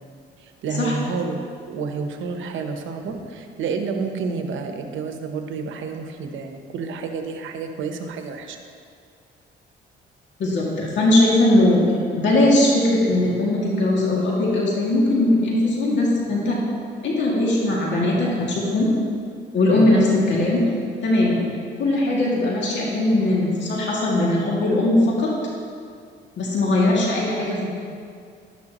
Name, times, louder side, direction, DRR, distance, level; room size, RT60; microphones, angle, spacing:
voice 1, 0.4-8.6 19.7-19.9, right 4 dB, 80° right, 5 dB, 1.0 m, -30 dB
voice 2, 10.4-11.8 12.2-16.6 17.0-18.9 19.5-20.6 21.0-21.4 21.8-25.3 26.4-27.7, left 1 dB, 65° left, -4 dB, 2.3 m, -19 dB
12.0 x 10.5 x 3.0 m, 2.3 s
cardioid pair, 90°, 20 cm